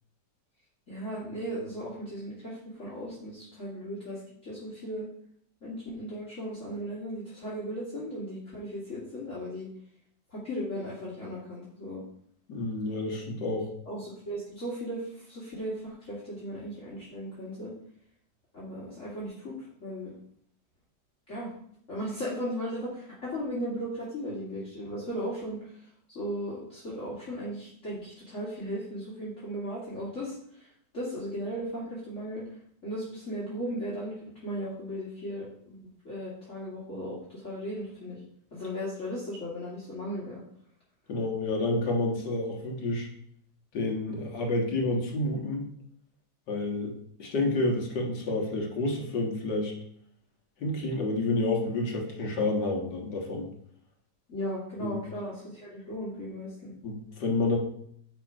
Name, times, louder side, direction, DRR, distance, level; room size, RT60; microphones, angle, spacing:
voice 1, 0.9-5.0 5.6-9.7 10.3-12.0 13.9-17.7 18.5-20.1 21.3-21.5 21.9-32.4 32.8-34.1 34.4-35.8 36.0-38.2 38.5-40.4 54.3-56.7, equal, 45° left, -8 dB, 2.7 m, -36 dB
voice 2, 12.5-13.7 41.1-43.1 43.7-45.7 46.5-49.7 50.6-53.5 54.8-55.0 56.8-57.6, left 2 dB, 80° left, 1 dB, 2.3 m, -29 dB
10.5 x 4.3 x 5.1 m, 0.66 s
omnidirectional pair, 1.8 m